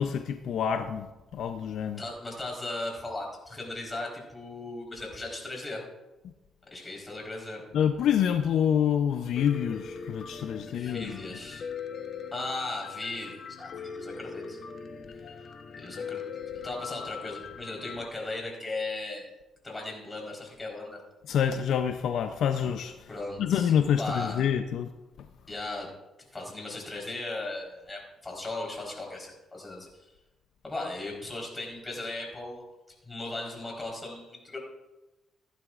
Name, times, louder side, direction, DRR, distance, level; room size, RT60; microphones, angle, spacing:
voice 1, 0.0-2.0 7.7-11.1 21.3-23.1 23.4-24.9, left 8 dB, 75° left, 8 dB, 0.6 m, -27 dB
voice 2, 2.0-5.8 6.7-7.6 10.7-11.6 12.3-14.6 15.2-15.4 15.8-16.2 16.6-19.3 19.6-21.0 23.1-23.7 24.0-24.4 25.5-25.9 26.3-30.1 30.6-32.6 33.0-34.6, left 2 dB, 20° left, -1 dB, 4.1 m, -37 dB
Piano, 9.4-18.1, left 6 dB, 55° left, 1.0 m, -40 dB
15.5 x 11.0 x 2.5 m, 1.1 s
cardioid pair, 90°, 0 cm